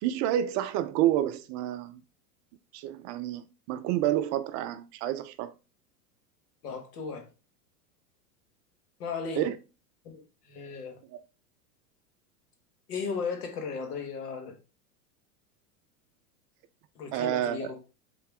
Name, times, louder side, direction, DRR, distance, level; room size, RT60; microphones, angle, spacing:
voice 1, 0.0-2.0 2.7-5.5 9.4-9.6 11.1-11.2 17.1-17.7, right 12 dB, 40° right, 0.5 m, -29 dB
voice 2, 6.6-7.3 9.0-9.5 10.0-11.0 12.9-14.6 17.0-17.8, left 5 dB, 80° left, 2.0 m, -36 dB
7.1 x 3.8 x 3.6 m
hypercardioid pair, 115°, 46 cm